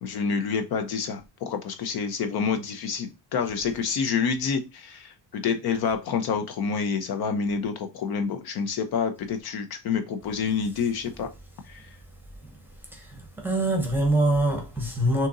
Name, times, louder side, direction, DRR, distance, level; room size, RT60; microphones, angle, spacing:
voice 1, 0.0-11.3 11.7-11.9, left 6 dB, 60° left, 0.8 m, -28 dB
voice 2, 12.9-15.3, right 1 dB, 5° right, 0.9 m, -24 dB
6.5 x 2.9 x 2.5 m
cardioid pair, 175°, 43 cm